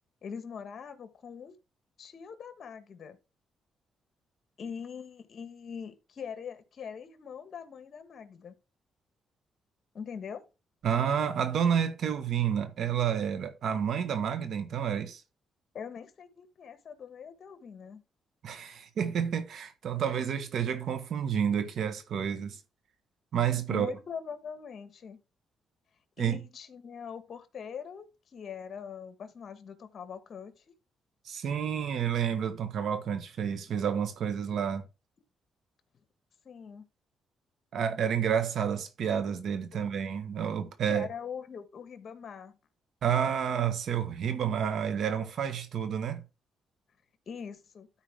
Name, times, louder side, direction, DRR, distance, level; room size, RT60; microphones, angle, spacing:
voice 1, 0.2-1.6 2.0-3.2 4.6-8.6 9.9-10.4 15.7-18.0 23.7-25.2 26.2-30.6 36.4-36.9 40.9-42.6 47.3-47.9, left 7 dB, 55° left, 1.4 m, -42 dB
voice 2, 10.8-15.2 18.4-22.6 23.3-23.9 26.2-26.4 31.2-34.8 37.7-41.1 43.0-46.2, right 8 dB, 70° right, 1.4 m, -30 dB
13.0 x 4.5 x 3.6 m
cardioid pair, 85°, 0 cm